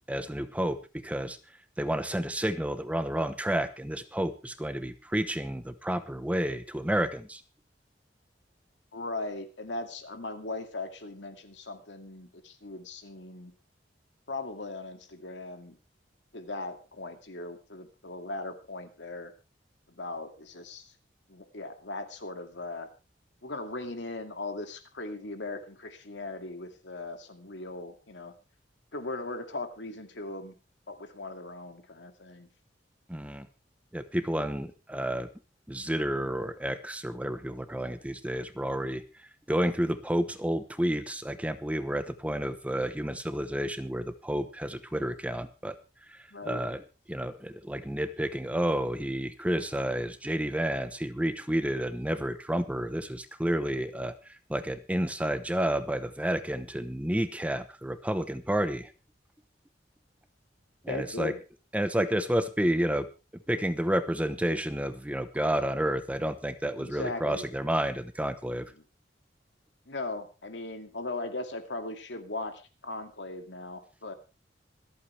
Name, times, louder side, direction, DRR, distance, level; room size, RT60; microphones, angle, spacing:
voice 1, 0.1-1.4 1.8-7.4 33.1-33.5 33.9-35.3 35.7-39.0 39.5-45.8 46.1-46.8 47.1-58.9 60.8-61.3 61.7-63.1 63.5-68.7, right 1 dB, 10° right, 11 dB, 0.9 m, -30 dB
voice 2, 8.9-13.5 14.3-15.8 16.3-19.3 19.9-20.9 21.3-22.9 23.4-28.3 28.9-30.5 30.9-32.5 46.3-46.6 60.9-61.4 66.8-67.5 68.8-68.9 69.9-74.1, left 2 dB, 80° left, 6 dB, 2.3 m, -38 dB
26.0 x 8.6 x 3.4 m, 0.30 s
head